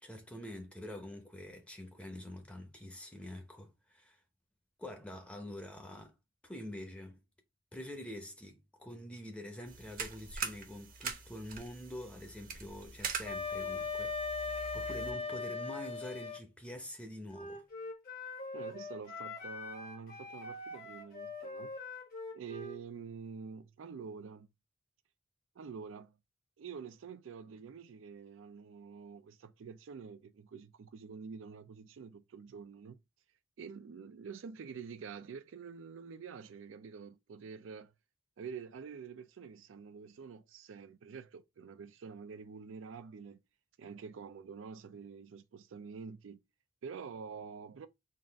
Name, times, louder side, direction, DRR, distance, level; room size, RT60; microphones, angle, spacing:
voice 1, 0.0-4.2 4.8-6.1 6.4-7.2 7.7-17.6, left 1 dB, 5° left, 0.7 m, -46 dB
sound 1, 9.7-15.1, right 5 dB, 45° right, 0.7 m, -43 dB
Wind instrument woodwind instrument, 13.2-16.4, left 4 dB, 30° left, 0.4 m, -38 dB
Wind instrument woodwind instrument 2, 17.3-22.8, left 3 dB, 50° left, 1.2 m, -44 dB
voice 2, 18.5-21.7 22.3-24.5 25.6-26.2 26.6-33.0 33.6-37.9 38.4-43.4 43.8-46.4 46.8-47.9, right 5 dB, 75° right, 0.4 m, -47 dB
4.0 x 2.4 x 3.3 m
head